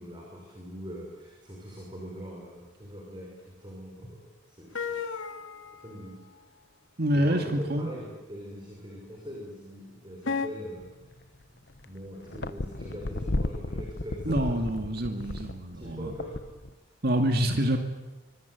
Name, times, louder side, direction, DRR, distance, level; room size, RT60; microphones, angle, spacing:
voice 1, 0.0-4.2 4.5-5.2 5.8-6.1 7.1-11.2 11.5-15.4 15.7-16.4, equal, 20° right, -1 dB, 5.8 m, -42 dB
sound 1, 4.7-6.0 7.9-8.0 10.2-10.5, left 5 dB, 75° left, 2.1 m, -33 dB
voice 2, 7.0-7.9 14.3-16.1 17.0-17.8, equal, 50° right, 5 dB, 2.3 m, -26 dB
sound 2, 10.8-11.4 11.8-16.7, left 1 dB, 50° left, 1.2 m, -34 dB
25.0 x 24.5 x 9.5 m, 1.1 s
head